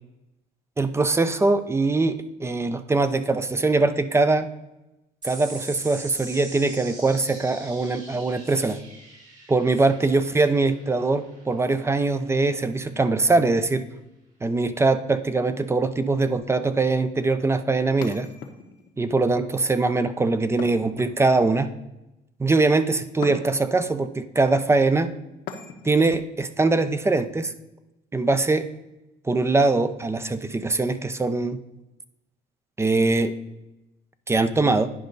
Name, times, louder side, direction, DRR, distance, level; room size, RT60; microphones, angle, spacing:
voice 1, 0.8-4.5 5.2-8.8 9.5-13.8 14.4-18.3 19.0-21.7 22.4-25.1 25.8-27.5 28.1-28.7 29.2-31.6 32.8-33.3 34.3-34.9, right 3 dB, 15° right, 11 dB, 0.5 m, -22 dB
sound 1, 5.2-12.0, right 2 dB, 45° right, 2.9 m, -43 dB
sound 2, 18.0-19.0 20.6-21.6 23.2-23.8 25.5-26.1, left 6 dB, 75° left, 1.1 m, -39 dB
10.0 x 5.2 x 3.9 m, 0.93 s
cardioid pair, 110°, 17 cm